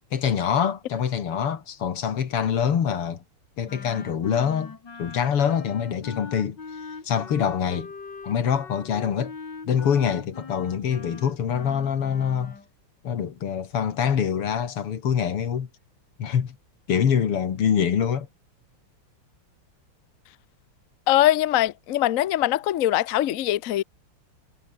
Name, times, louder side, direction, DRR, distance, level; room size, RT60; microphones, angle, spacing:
voice 1, 0.1-3.2 3.6-6.6 7.0-7.9 8.2-9.3 9.6-12.6 13.0-15.7 16.2-16.6 16.9-18.3, left 8 dB, 90° left, 2.9 m, -25 dB
Wind instrument woodwind instrument, 3.6-12.7, left 4 dB, 55° left, 4.0 m, -41 dB
voice 2, 21.1-23.8, left 13 dB, 70° left, 0.8 m, -22 dB
omnidirectional pair, 2.4 m